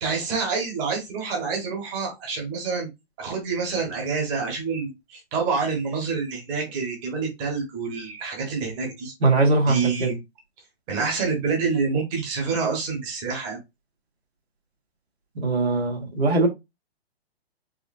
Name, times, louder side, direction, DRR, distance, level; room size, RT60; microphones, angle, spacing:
voice 1, 0.0-2.9 3.2-9.1 9.7-10.2 10.9-13.6, right 5 dB, 20° right, 1.3 m, -27 dB
voice 2, 9.2-10.1 15.4-16.5, right 3 dB, 80° right, 2.0 m, -21 dB
4.8 x 2.7 x 2.6 m
hypercardioid pair, 150°, 32 cm